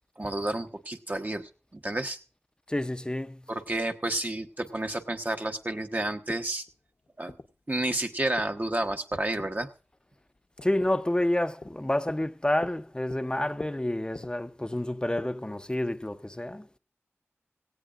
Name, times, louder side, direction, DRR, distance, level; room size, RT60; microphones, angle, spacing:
voice 1, 0.2-2.2 3.5-6.6 7.2-7.3 7.7-9.7, right 1 dB, 35° right, 1.1 m, -30 dB
voice 2, 2.7-3.4 10.6-16.8, left 1 dB, 20° left, 0.7 m, -29 dB
sound 1, 4.2-15.2, left 3 dB, 60° left, 1.0 m, -47 dB
17.5 x 16.0 x 2.5 m
wide cardioid pair, 50°, 5 cm